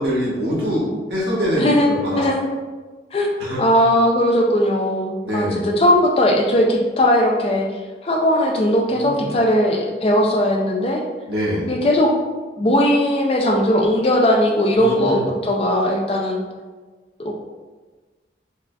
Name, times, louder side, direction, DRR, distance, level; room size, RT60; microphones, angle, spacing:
voice 1, 0.0-2.5 3.4-3.6 5.2-5.6 8.9-9.3 11.3-11.6 14.7-15.3, equal, 70° right, -7 dB, 1.2 m, -24 dB
voice 2, 1.6-2.4 3.1-3.3 3.6-7.7 8.0-11.0 11.6-12.1 12.6-16.4 17.2-17.3, left 1 dB, 35° left, 0 dB, 0.3 m, -18 dB
4.6 x 2.4 x 2.2 m, 1.3 s
head